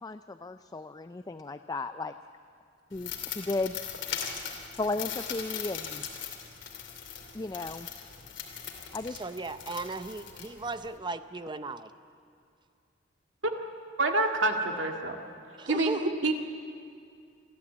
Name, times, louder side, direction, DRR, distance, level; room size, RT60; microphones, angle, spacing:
voice 1, 0.0-2.1 2.9-3.8 4.8-6.1 7.3-7.9 8.9-9.2, left 2 dB, 20° left, 10 dB, 0.4 m, -34 dB
sound 1, 2.9-11.0, left 8 dB, 70° left, 2.7 m, -40 dB
voice 2, 9.1-11.9 15.6-16.2, right 3 dB, 25° right, 11 dB, 0.7 m, -36 dB
voice 3, 14.0-15.2 15.7-16.3, right 2 dB, 75° right, 3 dB, 2.0 m, -27 dB
27.5 x 12.0 x 8.5 m, 2.3 s
head